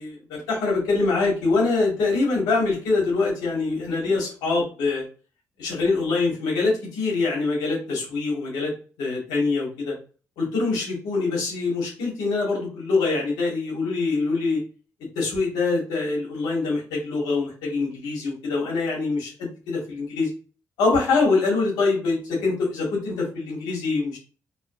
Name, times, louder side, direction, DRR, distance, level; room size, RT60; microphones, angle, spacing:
voice 1, 0.0-5.0 5.6-9.9 10.4-14.6 15.1-20.3 20.8-24.2, left 3 dB, 90° left, -3 dB, 2.2 m, -24 dB
4.4 x 3.9 x 2.7 m, 0.37 s
supercardioid pair, 50°, 7 cm